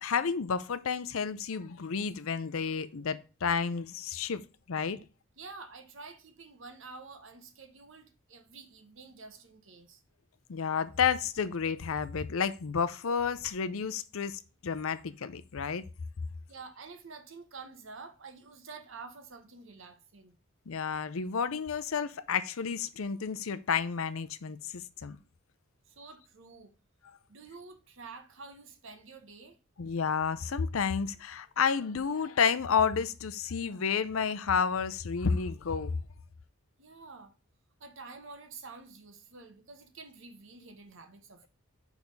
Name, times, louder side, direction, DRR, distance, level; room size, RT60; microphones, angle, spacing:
voice 1, 0.0-4.4 4.7-5.0 10.5-15.8 20.7-25.2 29.8-36.0, left 6 dB, 75° left, 0.5 m, -31 dB
voice 2, 5.4-10.0 16.5-20.4 25.9-26.7 27.3-29.6 36.8-37.3 37.8-41.5, right 4 dB, 65° right, 1.0 m, -49 dB
6.3 x 3.6 x 5.2 m
head